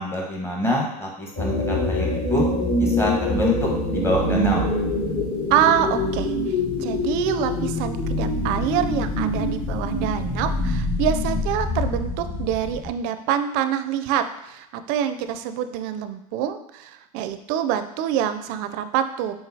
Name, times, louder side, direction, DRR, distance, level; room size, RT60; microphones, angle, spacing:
voice 1, 0.0-2.5 2.8-4.7, left 1 dB, 15° left, -2 dB, 1.2 m, -26 dB
sound 1, 1.4-12.9, left 2 dB, 35° left, 1.3 m, -25 dB
voice 2, 5.5-19.3, right 9 dB, 55° right, 10 dB, 0.4 m, -26 dB
4.4 x 3.6 x 2.7 m, 0.85 s
hypercardioid pair, 110°, 19 cm